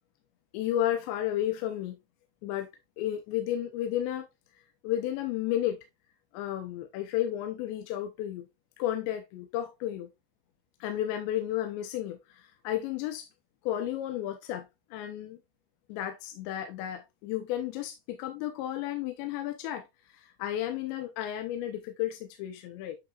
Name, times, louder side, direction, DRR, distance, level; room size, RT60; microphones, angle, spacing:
voice 1, 0.5-2.0 2.4-2.7 3.0-4.3 4.8-5.8 6.3-8.5 8.8-10.1 10.8-13.3 13.6-15.4 15.9-19.8 20.1-23.0, left 12 dB, 80° left, 2.9 m, -32 dB
9.0 x 5.3 x 2.4 m
omnidirectional pair, 5.4 m